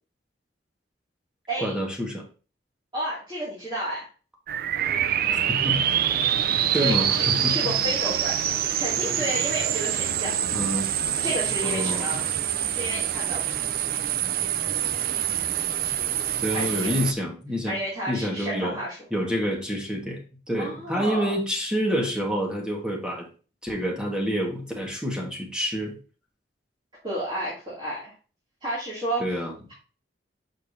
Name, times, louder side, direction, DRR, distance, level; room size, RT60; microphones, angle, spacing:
voice 1, 1.6-2.2 5.3-5.8 6.7-7.7 10.5-10.9 11.6-12.2 16.4-17.8 18.1-18.8 19.1-20.2 20.5-23.3 23.6-26.0 29.2-29.6, equal, 5° right, 0 dB, 1.5 m, -28 dB
voice 2, 2.9-4.1 6.7-8.4 8.8-10.3 11.2-12.2 12.7-13.6 16.5-17.0 17.6-19.0 20.6-21.3 27.0-28.1 28.6-29.2, equal, 30° right, -9 dB, 2.5 m, -31 dB
sound 1, 4.5-17.1, right 10 dB, 55° right, 0.4 m, -25 dB
6.6 x 5.3 x 2.7 m, 0.36 s
head